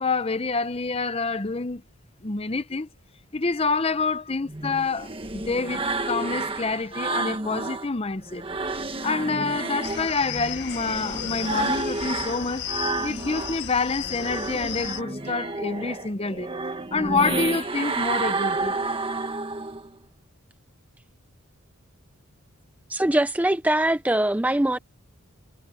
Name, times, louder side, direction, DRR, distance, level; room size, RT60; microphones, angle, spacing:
voice 1, 0.0-1.8 2.2-2.9 3.3-8.4 9.0-12.7 13.0-16.5 16.9-18.8, left 4 dB, 25° left, 0.7 m, -27 dB
sound 1, 4.5-7.9 8.3-13.6 14.0-19.9, right 3 dB, 25° right, 1.6 m, -30 dB
sound 2, 9.8-15.0, left 8 dB, 50° left, 1.5 m, -34 dB
voice 2, 22.9-24.8, right 1 dB, 5° right, 0.4 m, -22 dB
head